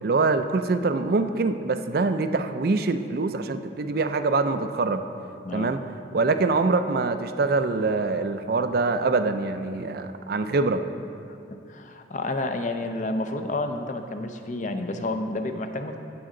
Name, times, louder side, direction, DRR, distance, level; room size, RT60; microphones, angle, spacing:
voice 1, 0.0-5.0 5.5-5.8 6.1-10.8, right 3 dB, 55° right, 9 dB, 0.4 m, -24 dB
voice 2, 5.4-5.8 11.5-16.0, left 2 dB, 40° left, 6 dB, 0.6 m, -30 dB
16.5 x 6.2 x 3.8 m, 2.6 s
head